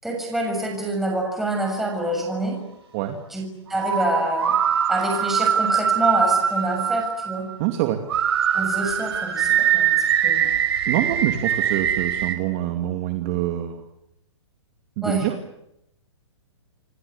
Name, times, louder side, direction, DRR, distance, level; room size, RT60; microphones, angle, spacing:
voice 1, 0.0-2.6 3.3-4.6 4.9-7.5 8.5-9.9 10.2-10.5 15.0-15.3, right 1 dB, ahead, 1 dB, 6.6 m, -26 dB
sound 1, 2.0-2.7 3.7-7.7 8.1-12.3, right 8 dB, 55° right, 6.0 m, -22 dB
voice 2, 7.6-8.0 10.9-13.8 15.0-15.3, right 13 dB, 30° right, 6 dB, 2.5 m, -25 dB
28.5 x 23.5 x 8.7 m, 0.82 s
hypercardioid pair, 160°, 15 cm